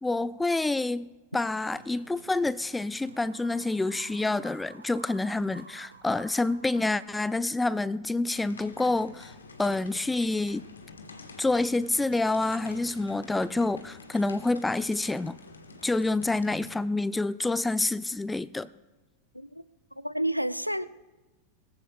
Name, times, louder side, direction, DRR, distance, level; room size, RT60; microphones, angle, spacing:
voice 1, 0.0-9.3 9.6-10.7 11.4-15.4 15.8-18.7, left 2 dB, 10° left, 0.3 m, -28 dB
sound 1, 1.6-7.6, right 4 dB, 75° right, 1.1 m, -52 dB
sound 2, 8.3-16.8, left 3 dB, 75° left, 1.4 m, -48 dB
voice 2, 20.0-20.8, right 1 dB, 90° left, 0.4 m, -29 dB
22.0 x 15.5 x 2.3 m
figure-of-eight pair, 90°, 0 cm